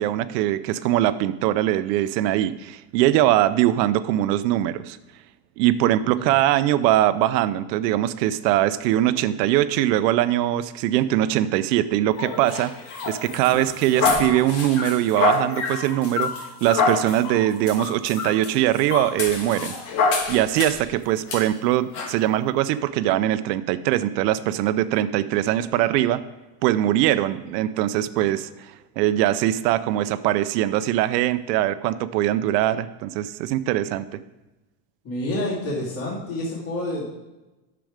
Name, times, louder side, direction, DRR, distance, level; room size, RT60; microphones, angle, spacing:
voice 1, 0.0-5.0 5.6-12.7 13.1-16.3 16.6-19.7 20.3-26.2 26.6-28.7 29.0-34.0, right 13 dB, 90° right, 13 dB, 0.7 m, -22 dB
sound 1, 12.2-20.9 21.3-21.4 21.9-22.1, left 4 dB, 70° left, 2.5 m, -26 dB
voice 2, 35.0-37.1, left 1 dB, 30° left, -6 dB, 2.7 m, -28 dB
9.3 x 6.9 x 5.0 m, 1.1 s
cardioid pair, 155°, 48 cm